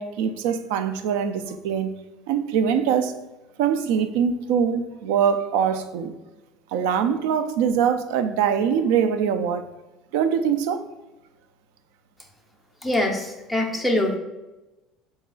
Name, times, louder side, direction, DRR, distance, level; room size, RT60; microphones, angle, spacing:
voice 1, 0.0-1.9 2.3-3.1 3.6-6.1 6.7-9.6 10.1-10.8, right 7 dB, 80° right, 0.3 m, -23 dB
voice 2, 12.8-14.2, left 1 dB, ahead, 0.4 m, -23 dB
3.9 x 2.4 x 3.7 m
cardioid pair, 175°, 0 cm